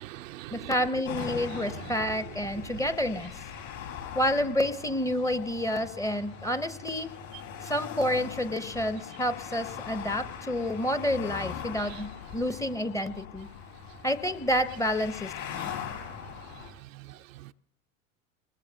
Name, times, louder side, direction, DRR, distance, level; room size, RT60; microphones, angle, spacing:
voice 1, 0.0-0.7 1.5-1.6 11.9-12.0 15.6-15.7 16.6-17.5, right 15 dB, 70° right, 8 dB, 0.5 m, -44 dB
voice 2, 0.5-3.3 4.1-7.1 7.6-13.5 14.0-15.7, equal, 10° left, 12 dB, 0.6 m, -29 dB
sound 1, 1.0-16.7, left 8 dB, 70° left, 6.9 m, -41 dB
24.0 x 20.5 x 2.7 m, 0.76 s
figure-of-eight pair, 85°, 41 cm